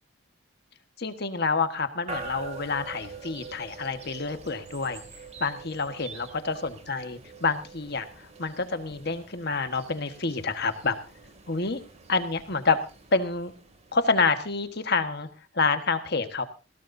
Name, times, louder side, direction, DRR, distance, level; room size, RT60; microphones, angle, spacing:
voice 1, 1.0-5.0 5.4-11.0 11.5-11.8 12.1-12.8 13.1-13.5 13.9-15.3 15.5-16.4, left 4 dB, 50° left, 9 dB, 1.4 m, -28 dB
sound 1, 2.1-15.1, right 4 dB, 30° right, 2.5 m, -45 dB
20.0 x 17.0 x 2.7 m, 0.32 s
head